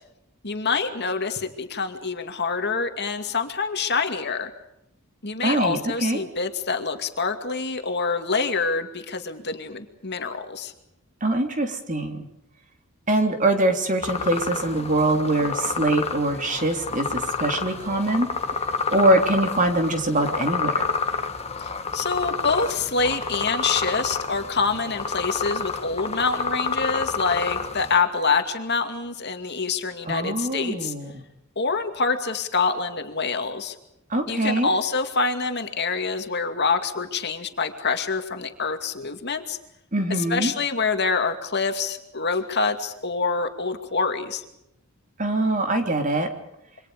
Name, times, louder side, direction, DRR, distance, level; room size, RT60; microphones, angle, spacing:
voice 1, 0.4-4.5 5.2-10.7 21.6-30.9 31.6-33.7 34.3-39.6 40.3-44.4, left 4 dB, 50° left, 6 dB, 2.4 m, -26 dB
voice 2, 5.4-6.2 11.2-12.3 13.1-18.3 18.9-20.8 30.1-31.2 34.1-34.7 39.9-40.5 45.2-46.3, right 1 dB, 35° right, 4 dB, 3.5 m, -23 dB
sound 1, 14.0-28.0, left 4 dB, 30° left, 1.9 m, -29 dB
27.5 x 25.0 x 5.2 m, 0.83 s
head